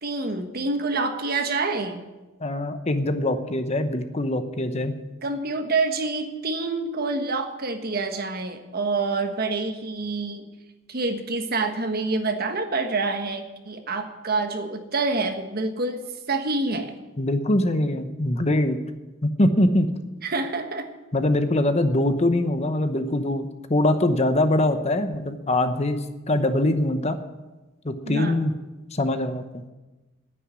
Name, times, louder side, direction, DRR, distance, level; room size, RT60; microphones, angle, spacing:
voice 1, 0.0-2.0 5.2-10.5 10.9-16.9 20.2-20.9 28.1-28.4, right 3 dB, 50° right, 6 dB, 1.3 m, -27 dB
voice 2, 2.4-5.0 17.2-18.8 19.2-19.9 21.1-27.2 27.8-28.5 28.9-29.4, left 1 dB, 35° left, 9 dB, 0.9 m, -23 dB
9.9 x 9.1 x 9.6 m, 1.1 s
head